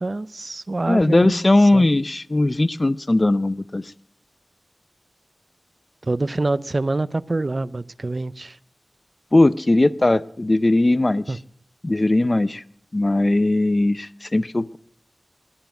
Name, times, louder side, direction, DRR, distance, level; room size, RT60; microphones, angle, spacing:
voice 1, 0.0-1.4 1.7-1.9 6.0-8.6 11.3-11.4, right 2 dB, 50° right, 0.5 m, -25 dB
voice 2, 0.9-3.9 9.3-11.4 11.8-12.6 12.9-14.8, left 2 dB, 35° left, 0.5 m, -19 dB
20.0 x 7.3 x 7.7 m
wide cardioid pair, 65°, 0 cm